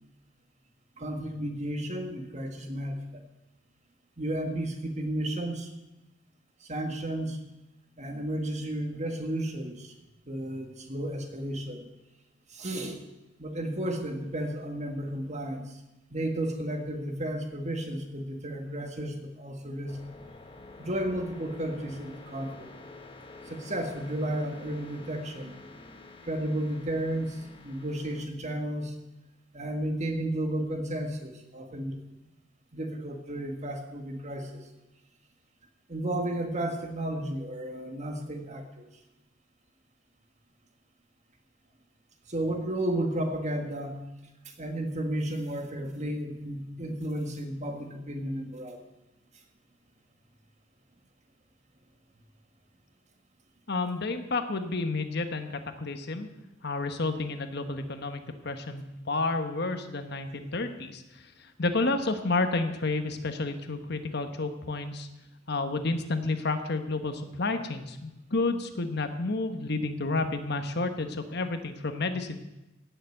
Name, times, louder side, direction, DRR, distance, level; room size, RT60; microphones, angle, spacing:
voice 1, 1.0-3.0 4.2-5.7 6.6-7.4 8.0-9.9 10.3-11.9 12.5-13.0 13.4-15.7 16.1-20.0 20.8-22.7 23.5-25.5 26.2-27.4 27.6-28.9 29.5-32.0 32.7-34.6 35.9-38.8 42.3-44.0 44.6-48.8, right 1 dB, 35° right, 5 dB, 1.8 m, -33 dB
sound 1, 19.9-28.3, left 3 dB, 25° left, 1.2 m, -48 dB
voice 2, 53.7-56.3 56.6-65.1 65.5-72.4, left 3 dB, 55° left, 8 dB, 1.2 m, -30 dB
17.0 x 7.1 x 7.8 m, 0.99 s
head